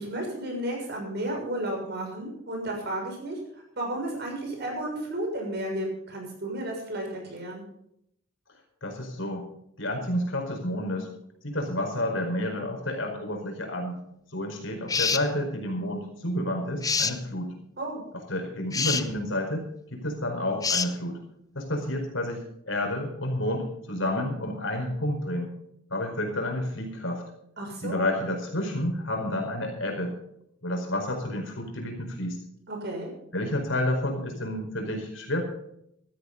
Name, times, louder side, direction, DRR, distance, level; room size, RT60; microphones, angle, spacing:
voice 1, 0.0-7.6 17.8-18.0 27.6-28.2 32.7-33.1, right 1 dB, 55° right, 1 dB, 6.5 m, -33 dB
voice 2, 8.8-9.4 9.8-11.1 11.4-14.0 14.3-17.5 18.3-21.2 21.5-25.5 25.9-27.2 27.8-30.2 30.6-32.4 33.3-35.4, left 1 dB, 70° left, 3 dB, 4.8 m, -30 dB
sound 1, 14.9-15.3 16.8-17.2 18.7-19.0 20.6-20.9, left 5 dB, 20° left, 0.7 m, -26 dB
16.5 x 13.5 x 4.0 m, 0.73 s
head